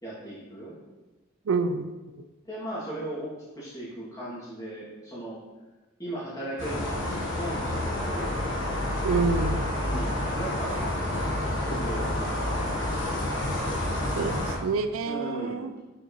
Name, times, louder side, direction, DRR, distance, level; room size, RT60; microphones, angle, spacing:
voice 1, 0.0-0.8 2.4-5.4 6.0-8.4 9.8-10.8 11.5-12.8 15.0-15.8, right 1 dB, 15° left, -8 dB, 2.3 m, -37 dB
voice 2, 1.5-1.9 9.0-9.7 14.2-15.7, right 4 dB, 80° right, 9 dB, 0.4 m, -27 dB
sound 1, 6.6-14.6, left 1 dB, 60° left, 1.5 m, -29 dB
6.7 x 6.5 x 3.1 m, 1.2 s
head